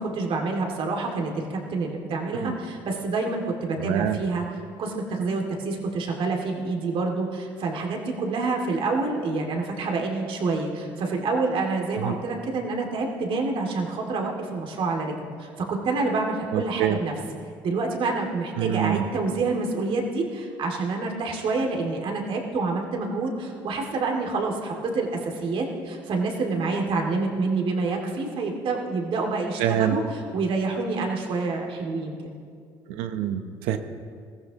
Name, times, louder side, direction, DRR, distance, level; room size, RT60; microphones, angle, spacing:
voice 1, 0.0-4.4 4.8-17.1 17.6-32.3, right 3 dB, 60° right, 1 dB, 2.4 m, -27 dB
voice 2, 3.8-4.2 12.0-12.1 16.5-17.0 18.6-19.1 29.6-30.0 32.9-33.8, right 10 dB, 85° right, 9 dB, 0.9 m, -26 dB
20.0 x 14.5 x 3.0 m, 2.2 s
supercardioid pair, 70°, 10 cm